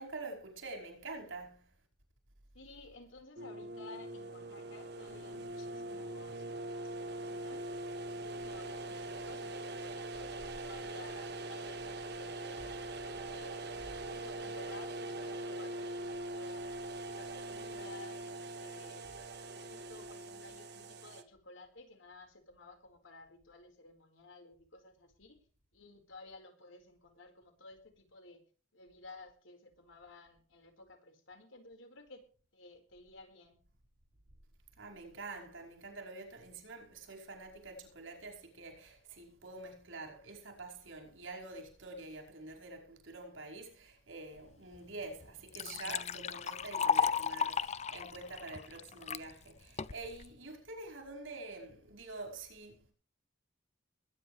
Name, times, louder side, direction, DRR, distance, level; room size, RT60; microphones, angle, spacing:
voice 1, 0.0-1.7 34.8-52.9, right 2 dB, 85° right, 5.2 m, -47 dB
voice 2, 2.5-7.7 8.1-13.6 14.0-16.7 17.0-19.1 19.5-25.4 25.7-28.4 28.7-32.3 32.5-33.6, left 2 dB, 85° left, 4.8 m, -55 dB
sound 1, 3.4-21.2, right 2 dB, 55° right, 1.6 m, -42 dB
Liquid, 44.7-44.8 45.2-49.2 49.8-50.3, left 6 dB, 35° left, 0.5 m, -34 dB
22.0 x 9.9 x 3.3 m
head